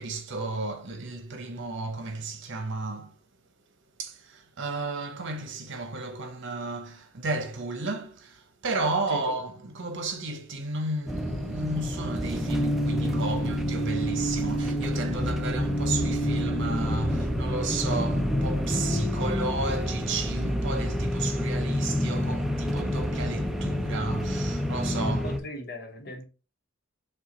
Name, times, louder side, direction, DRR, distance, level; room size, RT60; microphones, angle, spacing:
voice 1, 0.0-3.2 4.0-25.3, right 3 dB, 65° right, 0.9 m, -33 dB
sound 1, 11.1-25.4, equal, ahead, 0.4 m, -29 dB
sound 2, 12.5-19.3, right 1 dB, 25° left, 1.1 m, -31 dB
voice 2, 24.9-26.2, equal, 55° left, 1.0 m, -38 dB
5.8 x 2.4 x 3.9 m
head